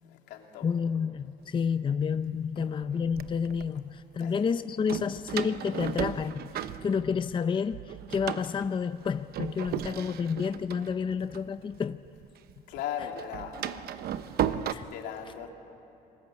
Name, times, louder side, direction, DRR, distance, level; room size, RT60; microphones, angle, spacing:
voice 1, 0.0-0.7 4.2-4.4 9.6-9.8 12.7-13.9 14.4-15.5, left 9 dB, 85° left, 2 dB, 3.1 m, -39 dB
voice 2, 0.6-12.0 14.7-14.8, left 6 dB, 30° left, 11 dB, 0.6 m, -30 dB
Door, 1.7-1.8 2.6-3.7 4.9-7.4 7.7-12.2 12.5-14.7, right 10 dB, 65° right, 0.9 m, -35 dB
30.0 x 21.0 x 8.3 m, 2.8 s
cardioid pair, 110°, 17 cm